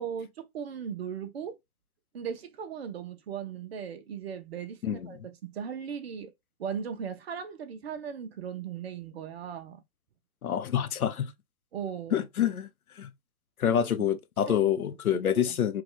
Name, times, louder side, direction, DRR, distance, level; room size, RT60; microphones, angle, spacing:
voice 1, 0.0-1.6 2.1-6.3 6.6-9.8 11.7-12.2 13.7-14.1 14.4-14.9 15.1-15.6, right 7 dB, 45° right, 0.8 m, -38 dB
voice 2, 4.8-5.2 10.4-11.3 12.1-12.7 13.0-13.1 13.6-15.8, left 9 dB, 75° left, 0.8 m, -27 dB
3.1 x 2.9 x 3.8 m
hypercardioid pair, 145°, 43 cm